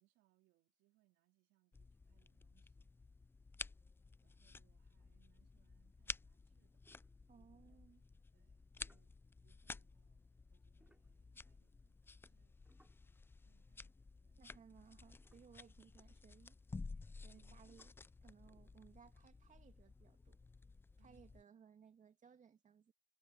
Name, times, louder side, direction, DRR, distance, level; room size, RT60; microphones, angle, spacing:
voice 1, 0.0-2.9 4.2-6.8 7.4-7.8 8.3-9.1 9.4-10.2 10.5-14.4 17.3-17.6 21.0-21.3, right 19 dB, 85° right, 4.0 m, -79 dB
sound 1, 1.7-21.4, left 3 dB, 10° left, 0.3 m, -54 dB
sound 2, 6.8-7.8 8.5-13.7 14.0-14.1 14.7-14.8 15.2-16.2 17.6-18.1, right 1 dB, 5° right, 6.2 m, -77 dB
voice 2, 7.3-8.0 14.4-16.6 16.9-17.9 18.2-20.4 21.0-22.9, right 7 dB, 40° right, 2.6 m, -64 dB
cardioid pair, 95°, 19 cm